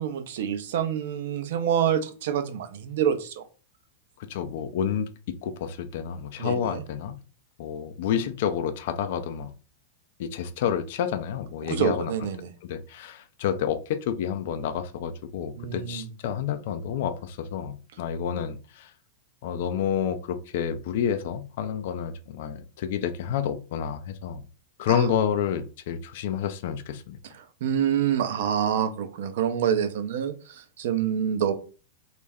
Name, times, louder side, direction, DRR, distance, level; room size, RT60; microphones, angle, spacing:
voice 1, 0.0-3.5 6.4-6.8 11.6-12.5 15.6-16.1 24.9-25.1 27.2-31.5, right 9 dB, 65° right, 0.5 m, -27 dB
voice 2, 4.3-5.1 5.4-7.2 7.6-9.5 10.2-12.1 12.7-18.9 19.4-24.4 24.8-27.2, left 8 dB, 60° left, 0.3 m, -29 dB
2.3 x 2.1 x 3.3 m
hypercardioid pair, 110°, 0 cm